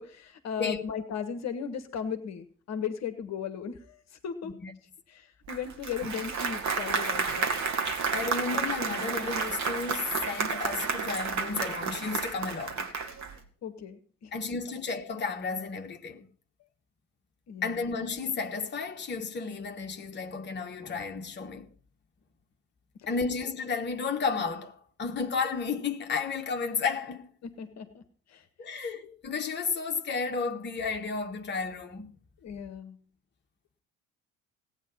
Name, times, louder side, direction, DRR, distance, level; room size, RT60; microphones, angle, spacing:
voice 1, 0.0-4.5 5.1-7.5 13.6-14.3 17.5-17.8 23.0-23.1 27.4-28.0 28.3-28.4 32.4-33.0, left 7 dB, 45° left, 1.4 m, -36 dB
Applause, 5.5-13.4, right 5 dB, 45° right, 2.3 m, -31 dB
voice 2, 8.1-12.9 14.3-16.3 17.6-21.7 23.1-27.3 28.6-32.1, left 5 dB, 30° left, 1.5 m, -32 dB
17.0 x 9.2 x 5.5 m
figure-of-eight pair, 55°, 38 cm